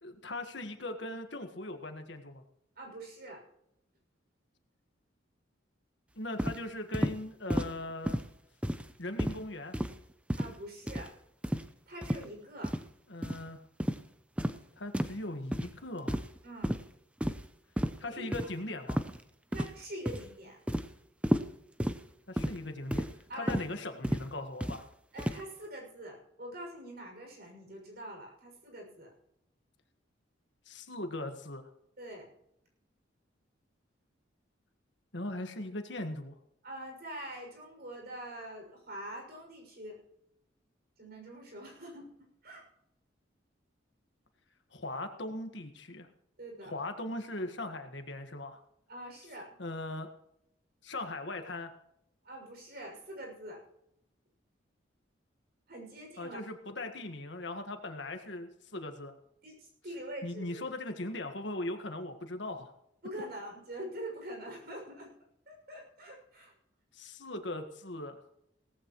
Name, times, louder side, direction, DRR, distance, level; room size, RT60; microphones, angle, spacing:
voice 1, 0.0-2.4 6.1-8.2 9.0-9.8 13.1-13.6 14.8-16.2 18.0-19.0 22.3-23.1 23.3-24.8 30.7-31.6 35.1-36.3 44.7-46.1 46.6-48.6 49.6-50.1 50.8-51.7 56.2-59.1 60.2-62.7 66.9-68.2, left 2 dB, 65° left, 6 dB, 1.6 m, -39 dB
voice 2, 2.8-3.4 10.4-11.2 11.9-12.8 16.4-16.8 18.0-18.2 19.5-20.6 23.3-23.6 25.1-29.1 32.0-32.3 36.6-40.0 41.0-42.1 42.4-42.7 46.4-46.8 48.9-49.5 52.2-53.6 55.7-56.4 59.4-60.6 63.0-65.1 65.5-66.5, right 1 dB, 50° right, 1 dB, 6.4 m, -44 dB
sound 1, 6.4-6.6 6.9-7.2 7.5-7.7 8.1-8.3 8.6-8.9 9.2-9.4 9.7-10.0 10.3-10.5 10.9-11.1 11.4-11.7 12.0-12.2 12.6-12.8 13.2-13.4 13.8-14.0 14.4-14.6 14.9-15.2 15.5-15.7 16.1-16.4 16.6-16.8 17.2-17.5 17.8-18.0 18.3-18.5 18.9-19.2 19.5-19.8 20.1-20.3 20.7-20.9 21.2-21.5 21.8-22.0 22.4-22.6 22.9-23.1 23.5-23.7 24.0-24.2 24.6-24.8 25.2-25.4, equal, 5° right, 0.7 m, -31 dB
17.5 x 15.0 x 3.1 m, 0.76 s
head